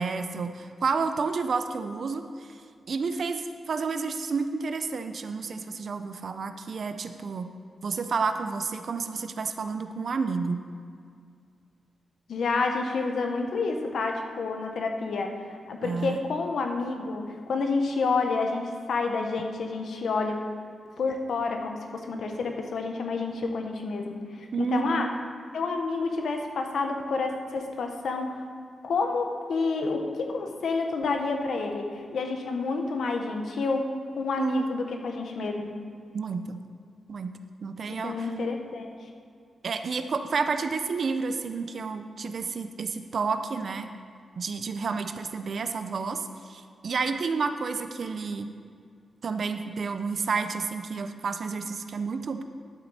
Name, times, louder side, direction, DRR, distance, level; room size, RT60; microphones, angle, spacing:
voice 1, 0.0-2.6 2.9-7.5 7.8-10.6 15.8-16.2 24.5-25.1 34.4-34.7 36.1-36.6 37.1-38.3 39.6-43.9 44.4-48.5 49.2-52.4, right 4 dB, 50° right, 8 dB, 0.6 m, -30 dB
voice 2, 12.3-20.4 20.8-25.1 25.5-28.4 28.8-35.8 37.9-38.9, left 4 dB, 70° left, 4 dB, 1.1 m, -29 dB
12.0 x 7.7 x 4.2 m, 2.2 s
wide cardioid pair, 150°, 0 cm